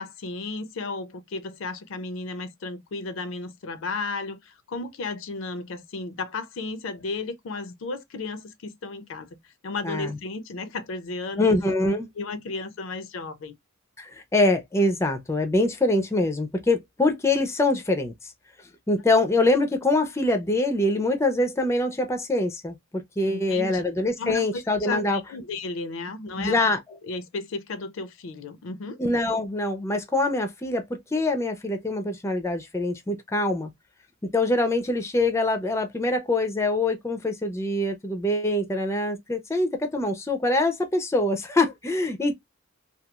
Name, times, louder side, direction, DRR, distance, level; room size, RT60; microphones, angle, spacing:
voice 1, 0.0-9.4 9.6-11.5 12.2-13.5 23.3-23.8 24.2-26.7 27.0-29.0, left 3 dB, 70° left, 0.5 m, -34 dB
voice 2, 9.8-10.2 11.4-12.1 14.0-18.1 18.9-25.2 26.4-26.8 29.0-33.7 34.3-42.3, left 2 dB, 15° left, 0.4 m, -24 dB
2.9 x 2.3 x 2.2 m
head